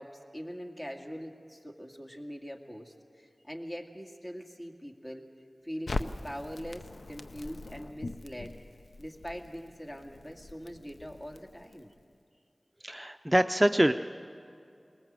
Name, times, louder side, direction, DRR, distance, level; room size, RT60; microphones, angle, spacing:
voice 1, 0.0-5.3 5.6-8.6 9.0-11.9, equal, 35° left, 2 dB, 2.2 m, -42 dB
Crackle, 5.9-12.0, left 2 dB, 90° left, 0.6 m, -41 dB
voice 2, 12.8-13.9, right 1 dB, 15° right, 8 dB, 0.5 m, -24 dB
21.5 x 19.0 x 7.6 m, 2.5 s
wide cardioid pair, 40°, 0 cm